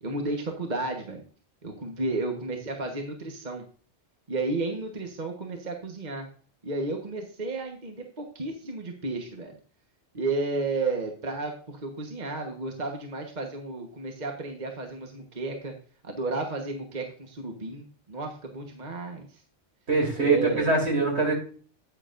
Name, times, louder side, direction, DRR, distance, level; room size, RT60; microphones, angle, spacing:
voice 1, 0.0-1.2 1.6-3.6 4.3-6.3 6.6-9.6 10.1-15.7 16.0-19.4 20.1-20.8, right 3 dB, 40° right, 3 dB, 1.3 m, -32 dB
voice 2, 19.9-21.3, right 3 dB, 70° right, 1 dB, 3.1 m, -23 dB
9.7 x 8.9 x 2.5 m, 0.43 s
omnidirectional pair, 1.2 m